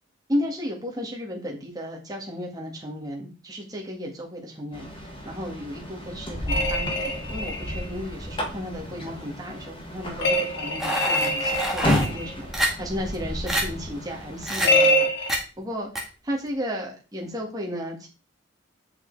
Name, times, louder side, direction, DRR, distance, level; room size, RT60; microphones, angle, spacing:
voice 1, 0.3-18.1, equal, 20° right, -1 dB, 2.0 m, -34 dB
sound 1, 4.7-14.5, left 1 dB, 25° left, 1.6 m, -32 dB
Leaf spring pronger, 6.5-7.8 10.2-12.3 14.6-15.3, left 1 dB, 60° left, 1.4 m, -24 dB
sound 2, 10.8-12.1 12.5-12.7 13.1-13.2 13.5-13.6 14.4-14.7 15.3-15.4 16.0-16.1, right 1 dB, ahead, 1.7 m, -26 dB
7.5 x 5.7 x 4.1 m, 0.32 s
head